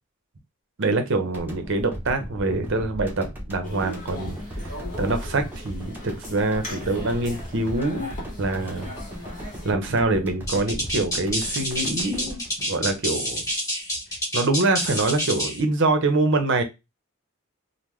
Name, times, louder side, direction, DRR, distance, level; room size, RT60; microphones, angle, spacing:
voice 1, 0.8-4.7 5.0-8.1 8.4-8.9 9.6-12.4 12.7-13.5 14.3-16.6, right 2 dB, 60° right, 7 dB, 0.6 m, -25 dB
sound 1, 1.3-13.5, equal, 10° right, 0.8 m, -37 dB
sound 2, 3.6-9.7, left 1 dB, 35° left, 1.2 m, -39 dB
sound 3, 10.5-15.6, equal, 15° left, 1.6 m, -28 dB
3.6 x 2.1 x 3.1 m, 0.23 s
head